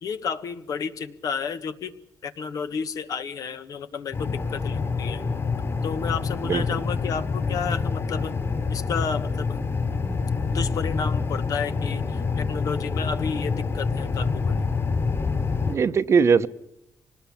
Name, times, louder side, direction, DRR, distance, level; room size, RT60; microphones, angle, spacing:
voice 1, 0.0-1.9 2.2-5.2 5.8-8.3 8.7-9.6 10.5-14.7, left 6 dB, 65° left, 9 dB, 1.6 m, -31 dB
sound 1, 4.1-15.8, left 4 dB, 40° left, 6.8 m, -27 dB
voice 2, 6.4-6.8 15.7-16.5, right 6 dB, 45° right, 13 dB, 0.9 m, -20 dB
25.5 x 19.5 x 7.2 m, 0.85 s
cardioid pair, 105°, 6 cm